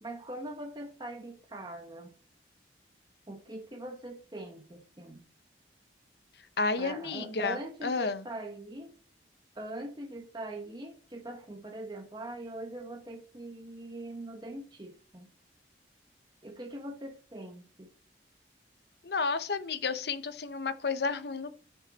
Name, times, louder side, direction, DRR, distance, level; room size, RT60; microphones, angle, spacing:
voice 1, 0.0-2.1 3.3-5.2 6.8-9.0 9.5-15.3 16.4-17.9, right 1 dB, 25° right, 1.1 m, -42 dB
voice 2, 6.6-8.2 19.0-21.6, left 4 dB, 65° left, 0.8 m, -31 dB
9.7 x 6.4 x 4.0 m
head